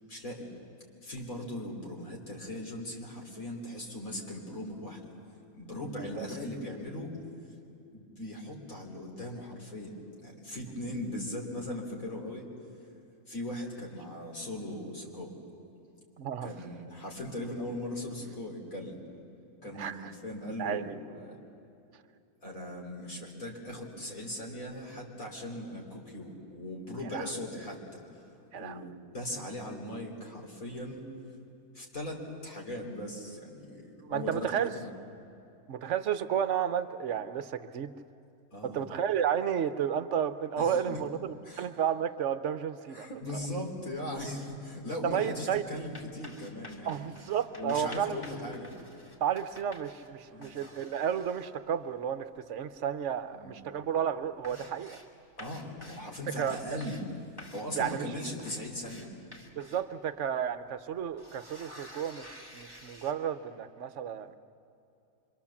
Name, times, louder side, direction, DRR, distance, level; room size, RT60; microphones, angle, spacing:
voice 1, 0.1-0.5 1.0-5.1 5.5-7.1 7.9-12.5 13.3-15.3 16.4-19.0 19.6-21.4 22.4-28.0 28.5-31.1 31.7-35.0 38.5-38.8 40.6-41.0 41.4-41.7 42.9-47.0 47.6-48.8 50.3-50.6 53.3-53.6 55.4-57.1 57.5-59.1, left 1 dB, 70° left, -1 dB, 3.8 m, -39 dB
voice 2, 16.2-16.5 19.7-20.1 20.6-20.8 27.1-27.3 28.5-28.8 34.0-34.8 35.7-37.9 38.6-43.1 43.3-43.4 45.0-45.6 46.8-48.2 49.2-55.0 56.4-56.8 57.8-58.1 59.5-64.4, right 8 dB, 60° right, 11 dB, 1.1 m, -32 dB
sound 1, 45.5-50.1 50.4-51.5 52.6-52.8 53.1-53.5 53.8-53.9 54.2-55.1 55.4-56.1 56.4-57.1 57.4-59.9 60.4-60.5 60.9-63.1, left 1 dB, 15° left, 2.5 m, -51 dB
25.5 x 25.0 x 7.2 m, 2.7 s
omnidirectional pair, 1.5 m